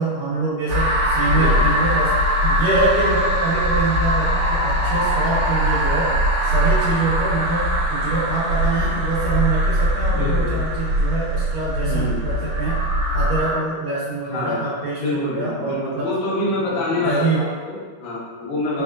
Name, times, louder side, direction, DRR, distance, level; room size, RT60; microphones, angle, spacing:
voice 1, 0.0-2.1 2.4-6.1 6.4-12.8 13.1-16.1 16.6-17.5, right 3 dB, 80° right, -9 dB, 2.5 m, -25 dB
sound 1, 0.7-13.5, equal, 65° right, 2.2 m, -21 dB
voice 2, 1.3-1.7 10.1-10.6 11.8-12.2 14.3-14.6 15.0-18.8, left 2 dB, 70° left, -8 dB, 1.1 m, -26 dB
4.6 x 4.1 x 2.3 m, 1.5 s
omnidirectional pair, 3.8 m